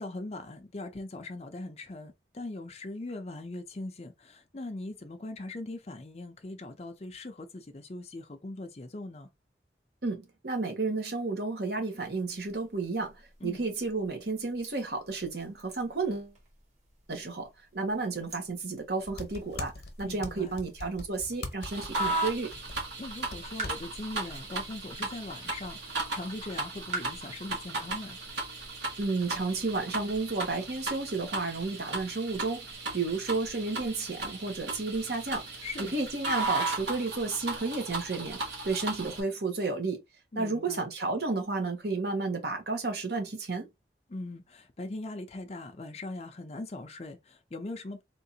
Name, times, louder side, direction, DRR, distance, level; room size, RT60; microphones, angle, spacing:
voice 1, 0.0-9.3 13.4-13.7 20.0-20.5 23.0-28.2 35.6-36.0 40.3-40.8 44.1-48.0, left 2 dB, 35° left, 0.5 m, -40 dB
voice 2, 10.0-13.1 13.4-16.3 17.1-19.7 20.0-22.5 29.0-32.6 32.9-35.4 35.9-38.4 38.6-40.0 40.4-43.7, right 3 dB, 65° right, 1.2 m, -32 dB
sound 1, 12.0-31.5, right 3 dB, 40° right, 1.4 m, -50 dB
sound 2, 19.0-25.1, left 2 dB, 70° left, 0.9 m, -43 dB
sound 3, 21.6-39.2, right 2 dB, 90° right, 1.3 m, -36 dB
3.7 x 2.5 x 2.7 m
head